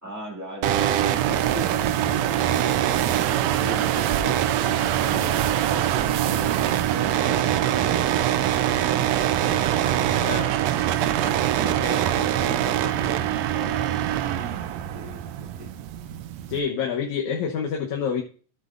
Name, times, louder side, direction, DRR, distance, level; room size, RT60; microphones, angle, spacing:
voice 1, 0.0-8.2 8.7-10.3 11.0-14.5 14.9-16.1, equal, 5° right, -1 dB, 2.3 m, -39 dB
sound 1, 0.6-16.6, right 11 dB, 75° right, 1.7 m, -23 dB
sound 2, 0.7-7.2, right 10 dB, 90° right, 2.2 m, -36 dB
voice 2, 10.2-10.6 16.5-18.2, left 7 dB, 75° left, 0 dB, 2.4 m, -27 dB
14.0 x 7.8 x 2.6 m, 0.40 s
omnidirectional pair, 3.5 m